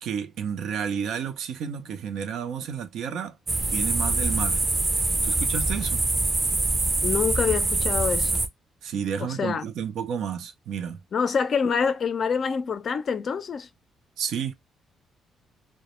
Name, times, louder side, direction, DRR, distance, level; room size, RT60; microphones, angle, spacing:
voice 1, 0.0-4.6 5.2-6.0 8.8-11.0 14.2-14.5, right 7 dB, 75° right, 0.5 m, -31 dB
sound 1, 3.5-8.5, right 2 dB, 30° right, 0.5 m, -24 dB
voice 2, 7.0-8.4 9.2-9.7 11.1-13.7, left 6 dB, 50° left, 0.4 m, -26 dB
2.1 x 2.0 x 2.9 m
cardioid pair, 90°, 0 cm